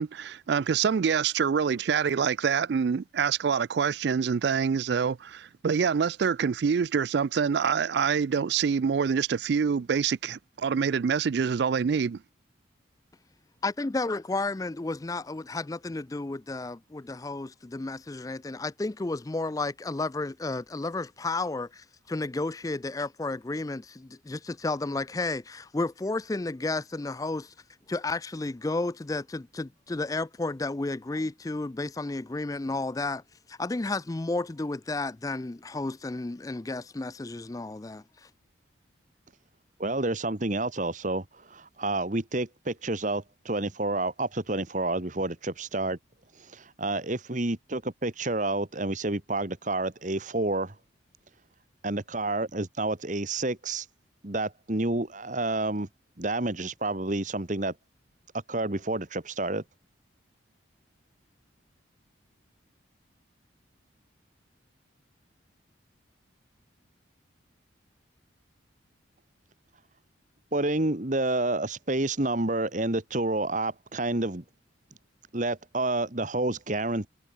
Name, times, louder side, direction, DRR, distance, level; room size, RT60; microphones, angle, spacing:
voice 1, 0.0-12.2, right 6 dB, 60° right, 0.3 m, -26 dB
voice 2, 13.6-27.5 27.9-33.2 33.5-38.3, left 2 dB, 15° left, 0.4 m, -32 dB
voice 3, 39.8-46.0 46.5-50.7 51.8-53.8 54.2-55.9 56.2-57.7 58.5-59.6 70.5-74.4 75.3-77.1, right 2 dB, 40° right, 1.5 m, -29 dB
head